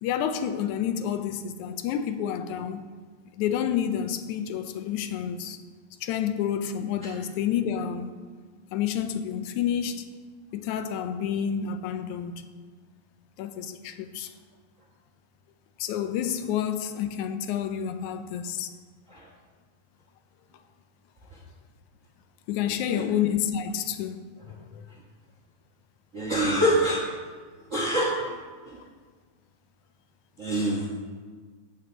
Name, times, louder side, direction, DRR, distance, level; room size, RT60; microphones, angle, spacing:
voice 1, 0.0-2.8 3.4-5.6 6.0-8.2 8.7-10.1 10.5-12.5 13.4-14.3 15.8-18.7 22.5-24.9, left 9 dB, 90° left, 2.1 m, -29 dB
voice 2, 26.1-27.0 27.7-28.3 28.7-28.8 30.4-30.9, right 1 dB, 55° right, 0.8 m, -25 dB
8.6 x 7.0 x 6.8 m
omnidirectional pair, 3.3 m